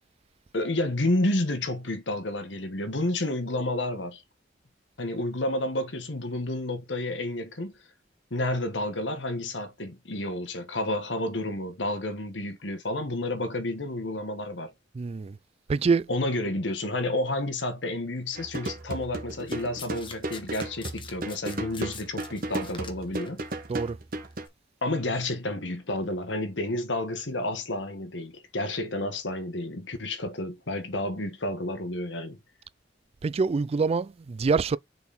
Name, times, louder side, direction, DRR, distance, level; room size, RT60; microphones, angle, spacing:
voice 1, 0.5-4.2 5.0-7.7 8.3-14.7 16.1-23.4 24.8-32.4, left 1 dB, 85° left, 1.5 m, -30 dB
voice 2, 14.9-15.4 15.7-16.1 23.7-24.0 33.2-34.8, right 4 dB, 35° right, 0.3 m, -25 dB
sound 1, 18.4-24.5, right 2 dB, 55° right, 1.5 m, -35 dB
Domestic sounds home sounds, 19.5-23.4 24.3-24.5, left 5 dB, 30° left, 1.2 m, -44 dB
6.7 x 4.1 x 4.2 m
head